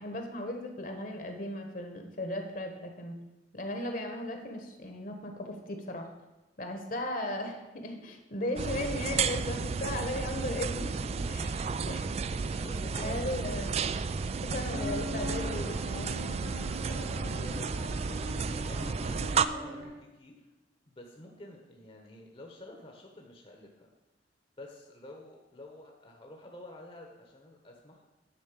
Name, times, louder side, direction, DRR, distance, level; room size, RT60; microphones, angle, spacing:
voice 1, 0.0-3.2 3.5-6.1 6.6-12.2 12.5-12.7 13.0-13.8 14.2-16.4, left 1 dB, 50° left, 4 dB, 1.3 m, -37 dB
sound 1, 8.6-19.5, right 5 dB, 35° right, 0.3 m, -32 dB
voice 2, 12.4-13.2 16.9-17.7 18.0-20.5 20.8-23.9 24.6-28.1, left 2 dB, 30° left, 1 dB, 1.0 m, -49 dB
sound 2, 14.7-19.9, left 1 dB, 70° right, 3.2 m, -41 dB
10.0 x 4.4 x 7.3 m, 1.0 s
head